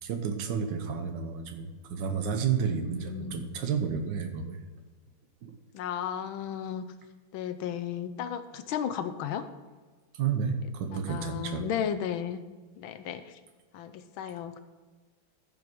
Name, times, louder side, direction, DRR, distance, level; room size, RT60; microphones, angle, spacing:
voice 1, 0.0-4.6 5.4-5.5 10.1-11.7, right 6 dB, 65° right, 6 dB, 1.6 m, -31 dB
voice 2, 2.9-3.5 5.7-6.9 7.3-9.5 10.9-12.4 12.8-13.4 13.7-14.6, left 9 dB, 90° left, 10 dB, 1.5 m, -34 dB
14.5 x 5.4 x 4.6 m, 1.3 s
omnidirectional pair, 2.2 m